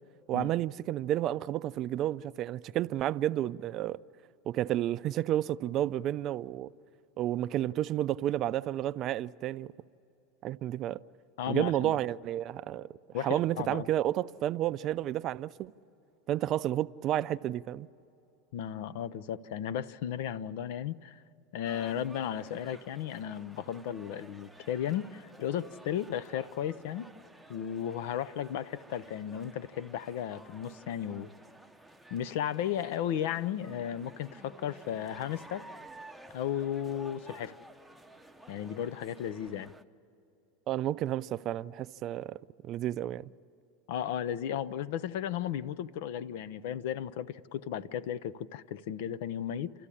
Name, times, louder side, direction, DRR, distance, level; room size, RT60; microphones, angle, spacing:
voice 1, 0.3-4.0 4.5-6.7 7.2-9.7 10.4-11.0 11.5-12.9 13.2-15.7 16.3-17.9 40.7-42.4 42.6-43.3, right 12 dB, 45° right, 0.4 m, -31 dB
voice 2, 11.4-11.9 13.1-13.9 18.5-21.2 21.5-27.1 27.5-31.3 32.1-35.6 36.3-37.6 38.5-39.7 43.9-49.7, left 10 dB, 70° left, 0.7 m, -35 dB
sound 1, 21.6-39.8, right 1 dB, ahead, 0.8 m, -53 dB
29.5 x 14.0 x 9.9 m
hypercardioid pair, 105°, 0 cm